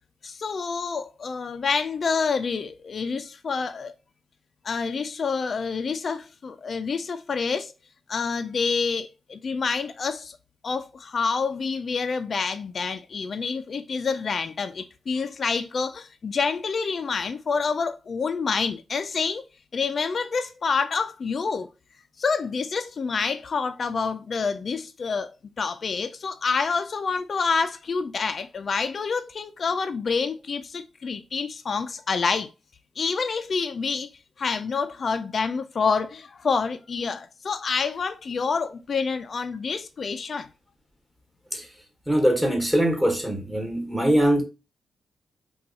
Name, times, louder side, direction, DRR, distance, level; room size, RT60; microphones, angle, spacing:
voice 1, 0.2-3.9 4.6-7.7 8.1-10.4 10.6-19.4 19.7-21.7 22.2-32.5 33.0-34.1 34.4-40.5, left 5 dB, 55° left, 0.3 m, -27 dB
voice 2, 42.1-44.4, right 1 dB, 5° right, 1.2 m, -22 dB
2.7 x 2.3 x 4.0 m
cardioid pair, 75°, 0 cm